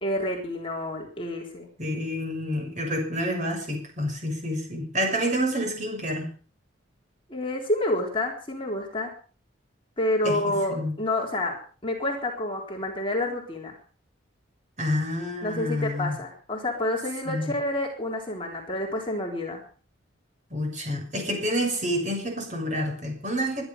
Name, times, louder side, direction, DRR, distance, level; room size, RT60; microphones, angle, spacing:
voice 1, 0.0-1.7 7.3-9.1 10.0-11.6 11.8-13.8 15.4-19.6, left 1 dB, 25° left, 0 dB, 3.8 m, -28 dB
voice 2, 1.8-6.3 10.2-10.9 14.8-16.2 17.3-17.5 20.5-23.6, equal, 35° right, 2 dB, 6.5 m, -28 dB
23.0 x 11.5 x 5.4 m, 0.41 s
head